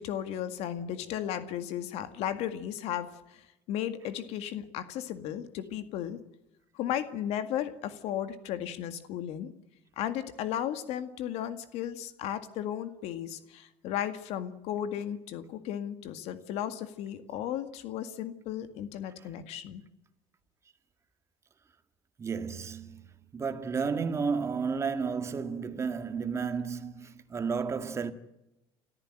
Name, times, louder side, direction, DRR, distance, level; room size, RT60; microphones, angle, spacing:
voice 1, 0.0-6.2 6.7-9.5 10.0-19.8, left 10 dB, 65° left, 2.0 m, -35 dB
voice 2, 22.2-23.0 23.3-28.1, right 5 dB, 25° right, 1.9 m, -32 dB
29.5 x 14.0 x 9.1 m
cardioid pair, 130°, 11 cm